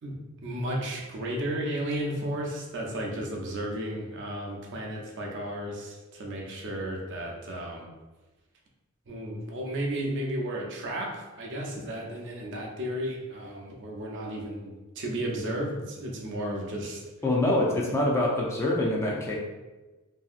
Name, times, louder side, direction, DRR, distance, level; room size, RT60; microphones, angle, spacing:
voice 1, 0.0-7.9 9.1-17.0, right 1 dB, 55° right, -1 dB, 0.6 m, -33 dB
voice 2, 17.2-19.4, left 1 dB, 10° left, -3 dB, 0.4 m, -25 dB
2.8 x 2.7 x 2.4 m, 1.2 s
head